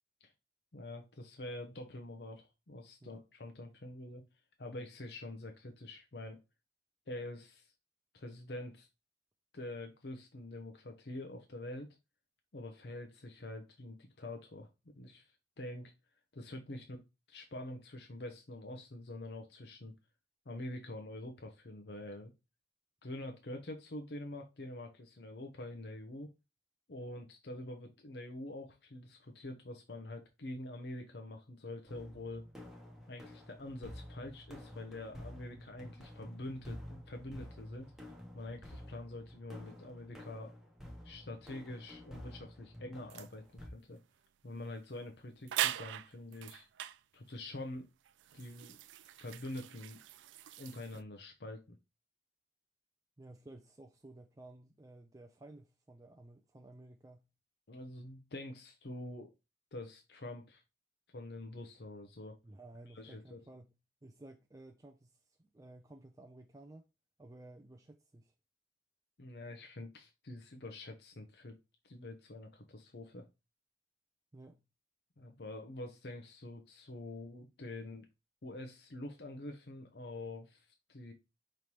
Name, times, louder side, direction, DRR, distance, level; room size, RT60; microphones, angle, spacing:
voice 1, 0.7-4.2 4.6-6.4 7.1-7.7 8.1-8.9 9.5-11.9 12.5-15.3 15.6-15.9 16.3-17.0 17.3-19.9 20.5-22.3 23.0-26.3 26.9-32.5 33.1-37.9 38.3-40.5 41.0-44.0 44.4-46.7 47.1-47.9 48.3-48.8 49.0-50.0 50.6-51.8 57.7-59.3 59.7-60.6 61.1-62.4 62.9-63.4 69.2-71.6 71.8-73.2 75.2-78.1 78.4-81.1, left 1 dB, 60° left, 0.7 m, -46 dB
sound 1, 31.9-43.7, left 1 dB, ahead, 0.9 m, -51 dB
sound 2, 43.1-43.3 44.5-44.7 44.9-45.0 45.5-47.0 47.7-51.0, right 11 dB, 90° right, 0.3 m, -40 dB
voice 2, 53.2-57.3 62.4-63.7 64.0-66.9 67.2-68.3 74.3-74.6, right 2 dB, 20° right, 0.4 m, -55 dB
5.3 x 3.2 x 2.9 m
head